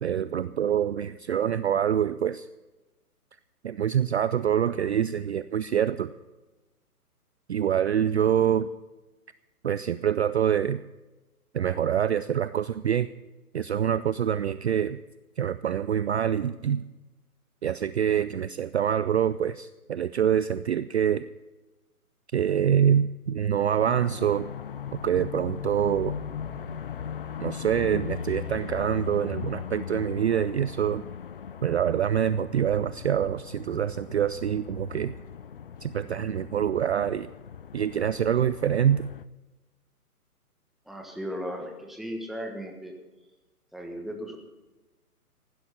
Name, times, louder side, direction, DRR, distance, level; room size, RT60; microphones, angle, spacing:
voice 1, 0.0-2.5 3.6-6.1 7.5-8.7 9.6-10.8 11.5-13.1 13.5-15.0 15.4-16.8 17.6-21.3 22.3-24.5 25.0-26.2 27.4-31.0 31.6-35.1 35.8-37.3 37.7-39.0, right 9 dB, 45° right, 14 dB, 0.5 m, -25 dB
sound 1, 23.8-39.2, left 8 dB, 40° left, 0.5 m, -38 dB
voice 2, 40.8-42.9 43.7-44.4, equal, ahead, 2 dB, 1.4 m, -36 dB
15.5 x 12.0 x 5.7 m, 1.1 s
figure-of-eight pair, 130°, 46 cm